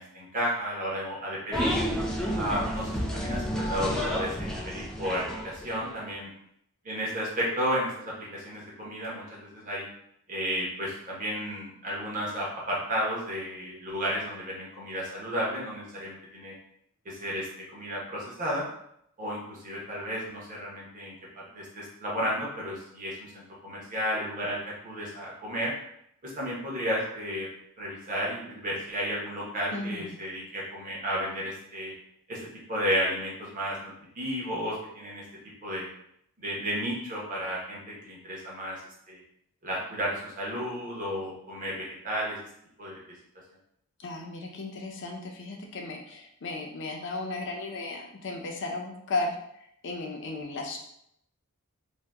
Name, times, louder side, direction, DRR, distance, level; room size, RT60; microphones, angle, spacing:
voice 1, 0.0-1.8 2.3-6.3 6.8-9.9 10.3-16.5 17.0-18.7 19.2-25.7 26.2-27.5 27.8-31.9 32.3-32.4 32.7-35.2 35.6-35.9 36.4-38.8 39.1-39.2 39.6-42.4 42.8-43.0, equal, 35° right, -5 dB, 0.9 m, -33 dB
sound 1, 1.5-6.0, equal, 5° left, 0.4 m, -31 dB
voice 2, 29.7-30.2 44.0-50.8, left 2 dB, 55° left, 1 dB, 0.6 m, -35 dB
2.7 x 2.2 x 3.4 m, 0.72 s
head